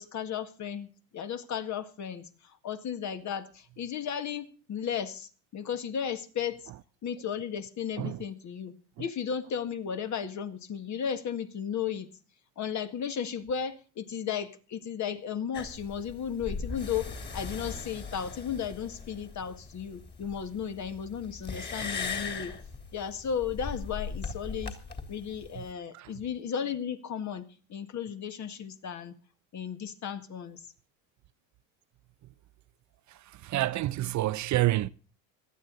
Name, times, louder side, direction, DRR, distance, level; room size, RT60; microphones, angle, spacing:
voice 1, 0.0-6.7 7.0-12.1 12.6-22.5 22.9-24.8 25.1-29.1 29.5-30.7, left 8 dB, 45° left, 1.9 m, -35 dB
sound 1, 15.5-25.7, left 5 dB, 25° left, 3.1 m, -39 dB
voice 2, 33.4-34.9, right 16 dB, 45° right, 0.7 m, -28 dB
18.0 x 13.0 x 4.0 m
supercardioid pair, 95°, 40 cm